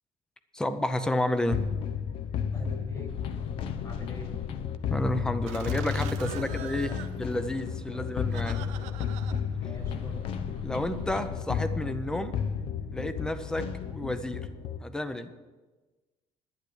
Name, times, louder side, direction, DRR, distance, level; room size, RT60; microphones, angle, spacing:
voice 1, 0.5-1.7 4.9-6.9 7.2-8.7 10.6-12.4 12.9-14.5 14.8-15.3, left 1 dB, 5° left, 11 dB, 0.7 m, -31 dB
sound 1, 1.5-14.8, left 7 dB, 55° left, 0.7 m, -33 dB
voice 2, 2.5-3.4 3.8-4.4 6.2-7.0 7.9-8.1 8.5-9.0 9.6-10.3, left 1 dB, 30° left, 3 dB, 2.3 m, -45 dB
Laughter, 5.5-10.6, right 10 dB, 85° right, 0.9 m, -44 dB
11.0 x 10.5 x 6.5 m, 1.3 s
cardioid pair, 165°, 11 cm